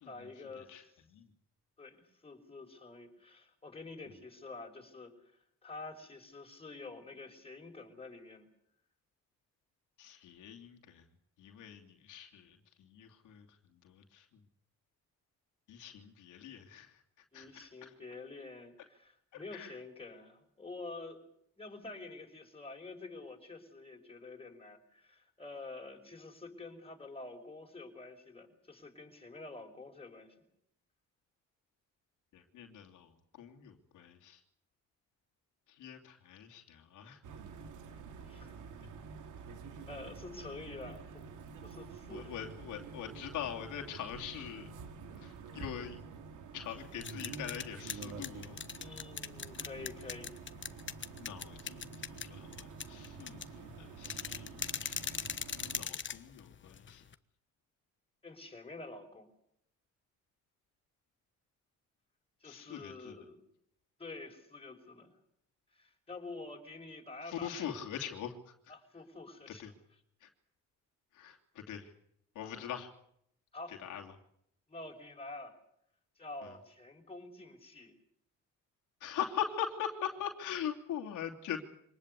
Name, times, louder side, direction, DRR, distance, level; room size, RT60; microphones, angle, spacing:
voice 1, 0.1-0.9 1.8-5.1 5.6-8.5 17.3-21.2 21.6-30.5 38.2-38.5 39.9-41.2 41.6-42.3 45.1-45.4 48.8-50.3 58.2-59.3 62.4-63.4 64.0-65.1 65.7-67.8 68.7-69.7 72.4-72.8 73.5-73.8 74.7-75.5 76.2-77.9, left 3 dB, 20° left, 3 dB, 5.5 m, -48 dB
voice 2, 10.0-11.0 11.4-13.4 13.8-14.3 15.7-17.0 17.3-17.9 19.5-19.7 32.3-34.4 35.7-37.2 42.1-44.7 45.2-46.0 46.5-48.6 51.2-57.0 62.4-63.2 67.3-68.5 69.5-69.7 70.2-70.3 71.1-71.9 72.3-72.9 73.7-74.1 76.4-76.5 79.0-81.7, left 9 dB, 85° left, 2 dB, 2.9 m, -42 dB
sound 1, 37.2-55.9, right 5 dB, 80° right, 2.9 m, -48 dB
sound 2, 46.8-57.1, left 7 dB, 40° left, 1.3 m, -42 dB
25.0 x 19.5 x 8.3 m, 0.72 s
cardioid pair, 90°, 30 cm